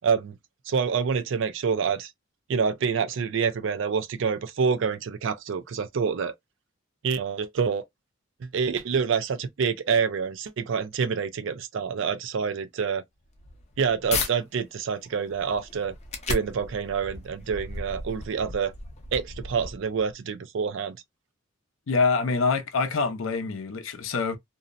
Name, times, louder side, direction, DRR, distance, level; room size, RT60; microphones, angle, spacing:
voice 1, 0.0-0.3 0.7-2.1 2.5-6.3 7.0-7.8 8.5-13.0 13.8-15.9 16.3-18.7 19.1-21.0, right 6 dB, 65° right, 0.4 m, -27 dB
sound 1, 13.2-14.3 14.9-20.1, left 3 dB, 35° left, 0.6 m, -35 dB
voice 2, 21.9-24.4, left 4 dB, 75° left, 0.5 m, -25 dB
2.6 x 2.0 x 2.4 m
head